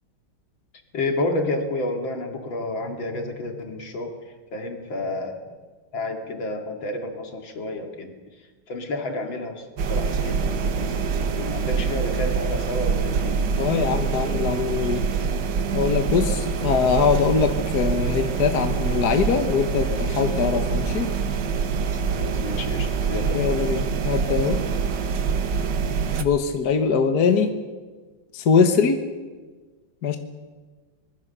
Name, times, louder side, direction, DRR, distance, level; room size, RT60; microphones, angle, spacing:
voice 1, 0.9-4.2 4.5-5.4 5.9-8.1 8.7-13.5 22.1-23.6, left 2 dB, 80° left, 3 dB, 3.2 m, -30 dB
sound 1, 9.8-26.2, right 5 dB, 65° right, 1.8 m, -25 dB
voice 2, 13.6-15.0 15.7-21.1 23.3-24.6 26.2-27.5 28.3-29.0 30.0-30.2, left 6 dB, 60° left, 6 dB, 1.8 m, -22 dB
24.5 x 21.0 x 6.8 m, 1.4 s
omnidirectional pair, 2.1 m